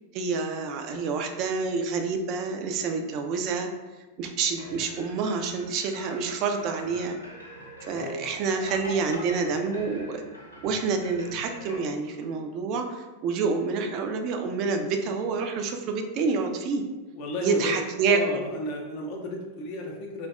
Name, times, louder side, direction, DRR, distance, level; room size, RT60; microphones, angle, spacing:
voice 1, 0.1-3.7 4.2-7.2 7.8-10.2 10.6-16.8 17.4-18.4, right 4 dB, 40° right, 5 dB, 0.3 m, -28 dB
sound 1, 4.5-11.8, left 1 dB, 85° left, 0.6 m, -44 dB
voice 2, 17.1-20.3, left 2 dB, 45° left, 0 dB, 0.4 m, -34 dB
3.2 x 2.1 x 2.4 m, 1.2 s
figure-of-eight pair, 90°, 0 cm